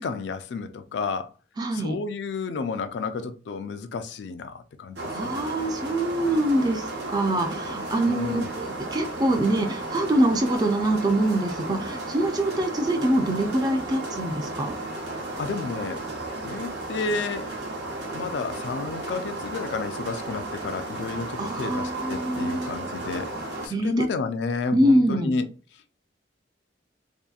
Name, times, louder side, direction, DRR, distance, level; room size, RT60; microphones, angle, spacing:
voice 1, 0.0-1.3 1.7-5.3 8.1-8.5 15.4-16.0 16.4-17.5 18.1-23.3 23.6-25.5, left 4 dB, 70° left, 0.3 m, -31 dB
voice 2, 1.6-2.0 5.1-14.8 21.4-22.7 23.7-24.0 24.7-25.3, right 1 dB, 20° right, 0.4 m, -24 dB
sound 1, 5.0-23.7, right 2 dB, 65° right, 0.7 m, -34 dB
2.7 x 2.5 x 2.3 m
head